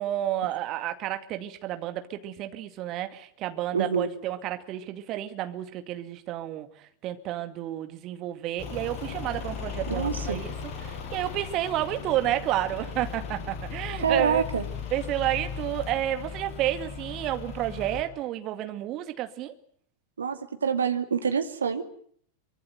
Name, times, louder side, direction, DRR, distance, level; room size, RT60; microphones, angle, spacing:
voice 1, 0.0-10.5 10.8-14.4 14.9-19.5, right 13 dB, 35° right, 8 dB, 2.3 m, -31 dB
voice 2, 3.7-4.1 9.9-10.4 14.0-14.7 20.2-21.8, right 6 dB, 70° right, 7 dB, 2.5 m, -26 dB
Truck / Idling, 8.6-18.0, left 6 dB, 35° left, 6.2 m, -37 dB
24.5 x 24.5 x 7.9 m, 0.62 s
figure-of-eight pair, 90°, 0 cm